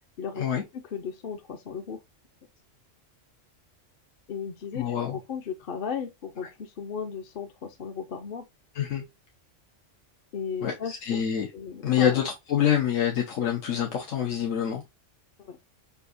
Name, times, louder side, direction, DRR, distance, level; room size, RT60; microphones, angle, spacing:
voice 1, 0.2-2.0 4.3-8.4 10.3-11.2 11.5-12.2 15.4-15.6, left 6 dB, 55° left, 0.7 m, -36 dB
voice 2, 4.7-5.2 8.7-9.0 10.6-11.5 11.8-14.8, left 9 dB, 90° left, 1.3 m, -26 dB
6.8 x 2.7 x 2.6 m
omnidirectional pair, 1.3 m